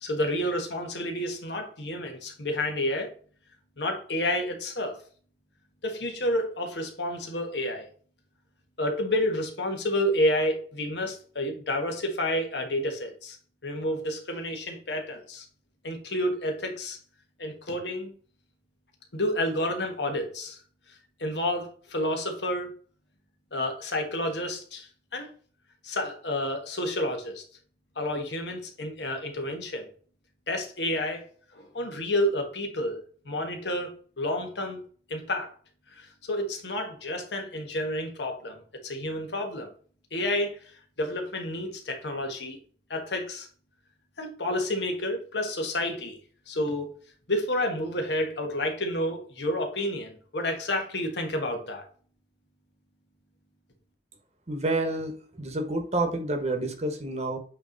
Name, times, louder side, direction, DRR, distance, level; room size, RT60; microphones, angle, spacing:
voice 1, 0.0-3.1 3.8-5.0 5.8-7.9 8.8-13.4 13.6-15.4 15.8-17.0 17.4-18.1 19.1-20.6 21.2-22.7 23.5-24.9 25.1-25.3 25.8-27.4 28.0-29.9 30.5-31.2 31.5-33.0 33.2-33.9 34.2-34.8 35.1-35.5 36.0-39.7 40.1-40.6 41.0-42.6 42.9-43.5 44.2-46.2 46.5-46.9 47.3-51.8, left 1 dB, 80° left, 1.5 m, -30 dB
voice 2, 54.5-57.4, right 2 dB, 40° right, 1.2 m, -29 dB
8.3 x 3.2 x 4.0 m
head